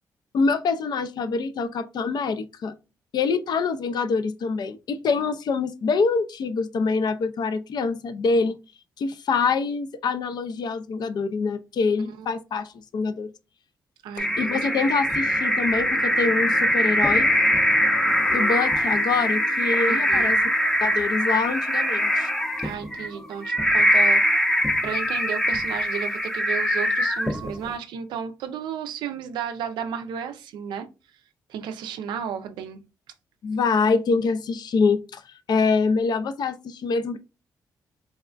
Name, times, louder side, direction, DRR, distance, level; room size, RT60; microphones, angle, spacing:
voice 1, 0.3-2.7 3.1-8.6 9.0-13.3 14.4-17.3 18.3-20.4 20.8-22.3 33.4-35.2 35.5-37.2, left 4 dB, 65° left, 0.4 m, -25 dB
voice 2, 14.0-14.7 19.8-20.3 22.6-24.2 24.8-30.9 31.5-32.8, right 8 dB, 90° right, 0.4 m, -33 dB
sound 1, 14.2-27.7, equal, 5° left, 0.5 m, -22 dB
3.4 x 2.2 x 2.3 m
supercardioid pair, 60°, 8 cm